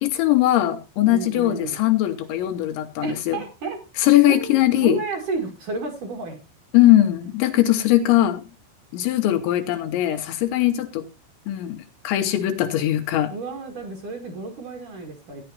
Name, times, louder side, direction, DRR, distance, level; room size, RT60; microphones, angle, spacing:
voice 1, 0.0-3.4 4.0-5.0 6.7-8.4 8.9-11.1 11.5-13.3, left 14 dB, 80° left, 6 dB, 3.0 m, -20 dB
voice 2, 1.1-1.8 3.0-3.8 4.3-6.4 13.3-15.4, right 4 dB, 50° right, 2 dB, 2.8 m, -31 dB
14.5 x 10.0 x 2.8 m, 0.28 s
omnidirectional pair, 5.7 m